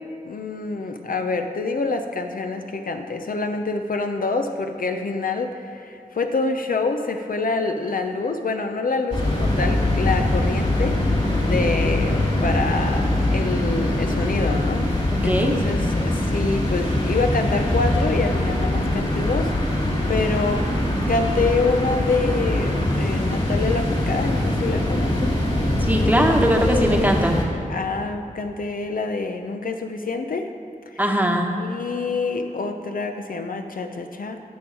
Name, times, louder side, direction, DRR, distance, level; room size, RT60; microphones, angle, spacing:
voice 1, 0.2-11.0 11.4-20.7 21.1-25.4 27.7-30.5 30.9-31.0 31.5-34.4, left 3 dB, 70° left, 5 dB, 0.7 m, -26 dB
sound 1, 9.1-27.4, left 1 dB, 40° left, 2.5 m, -22 dB
voice 2, 15.2-15.6 25.8-27.4 31.0-31.5, equal, 10° right, 1 dB, 1.2 m, -20 dB
16.5 x 6.2 x 4.8 m, 2.8 s
wide cardioid pair, 105°, 15 cm